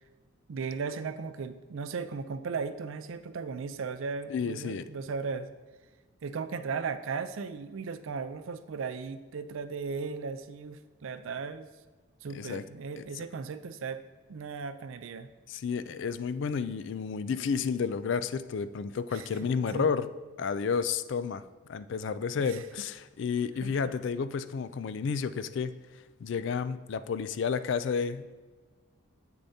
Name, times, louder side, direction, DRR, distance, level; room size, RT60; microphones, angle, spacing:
voice 1, 0.5-5.5 6.2-11.7 12.2-14.0 14.3-15.3 19.1-19.9 22.4-22.6 23.6-23.7, right 5 dB, 70° right, 12 dB, 0.4 m, -36 dB
voice 2, 4.3-4.8 12.3-12.6 13.0-13.1 15.5-20.1 20.4-21.4 21.7-25.7 26.2-28.3, left 6 dB, 60° left, 13 dB, 0.3 m, -31 dB
8.4 x 6.6 x 2.7 m, 1.3 s
head